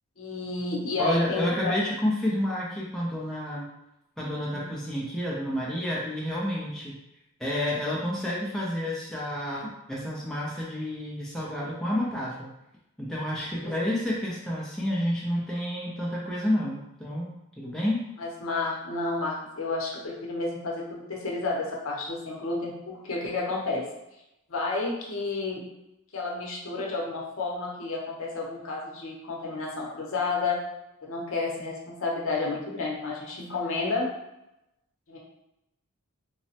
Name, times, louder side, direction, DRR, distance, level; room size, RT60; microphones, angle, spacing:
voice 1, 0.2-1.8 4.5-4.7 13.6-13.7 18.2-23.8 24.5-25.7 26.1-30.6 31.0-34.1 35.1-35.2, left 3 dB, 65° left, -2 dB, 0.6 m, -31 dB
voice 2, 1.0-3.7 4.2-7.0 7.4-12.5 13.0-18.0, left 1 dB, ahead, -6 dB, 0.4 m, -30 dB
3.1 x 2.0 x 2.7 m, 0.88 s
head